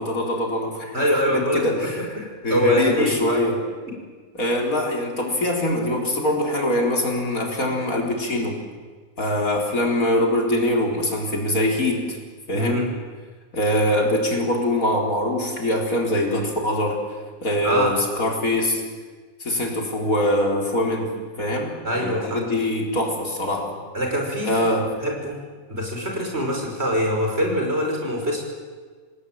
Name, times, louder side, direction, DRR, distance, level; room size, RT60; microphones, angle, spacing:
voice 1, 0.0-1.1 1.3-2.1 2.4-3.6 4.3-8.6 9.2-12.2 12.5-12.9 13.5-17.0 17.4-18.8 19.4-23.7 24.4-24.9, left 1 dB, 70° left, 1 dB, 4.6 m, -23 dB
voice 2, 0.9-1.6 2.5-3.4 12.5-12.8 17.6-17.9 21.8-22.4 23.9-24.7 25.0-25.4 25.7-28.4, equal, 45° right, 1 dB, 6.1 m, -24 dB
26.5 x 19.0 x 9.2 m, 1.5 s
omnidirectional pair, 1.5 m